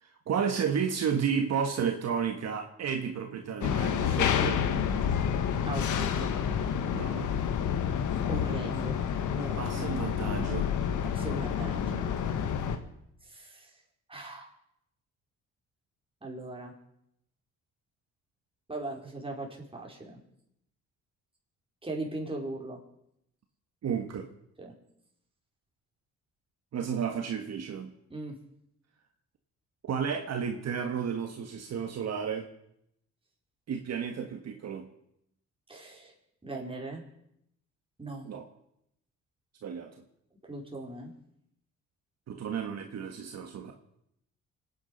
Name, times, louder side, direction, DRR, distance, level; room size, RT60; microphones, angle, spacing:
voice 1, 0.0-4.6 6.9-7.3 9.6-10.7 23.8-24.3 26.7-27.9 29.8-32.5 33.7-34.9 38.2-38.4 39.6-39.9 42.3-43.7, right 7 dB, 60° right, 4 dB, 1.6 m, -32 dB
sound 1, 3.6-12.8, left 8 dB, 80° left, 1.7 m, -29 dB
voice 2, 5.6-6.3 8.3-9.0 9.3-9.9 11.1-12.1 13.2-13.7 14.1-14.5 16.2-16.7 18.7-20.2 21.8-22.8 24.6-24.7 28.1-28.4 35.7-36.1 36.4-37.0 38.0-38.3 40.4-41.1, right 2 dB, 20° right, 0 dB, 4.9 m, -39 dB
25.5 x 9.8 x 5.5 m, 0.77 s
cardioid pair, 90°, 30 cm